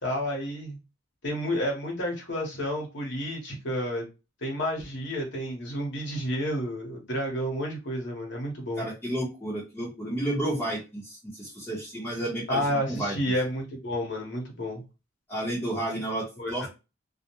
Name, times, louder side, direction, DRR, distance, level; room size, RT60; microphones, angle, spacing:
voice 1, 0.0-0.8 1.2-4.0 4.4-8.8 12.5-14.8 16.4-16.7, equal, 65° left, 0.9 m, -30 dB
voice 2, 8.8-13.2 15.3-16.7, right 1 dB, 10° left, 0.7 m, -31 dB
2.3 x 2.1 x 2.9 m
head